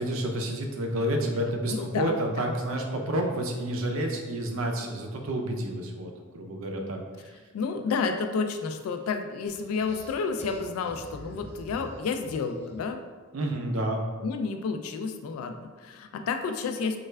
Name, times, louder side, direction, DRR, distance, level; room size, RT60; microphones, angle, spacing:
voice 1, 0.0-7.0 13.3-14.0, right 1 dB, 70° right, 2 dB, 0.5 m, -29 dB
voice 2, 1.7-2.5 7.5-13.0 13.7-13.8 14.2-17.0, left 5 dB, 85° left, 7 dB, 0.3 m, -31 dB
sound 1, 9.5-13.0, equal, 10° left, 0.6 m, -46 dB
3.2 x 2.3 x 3.2 m, 1.4 s
head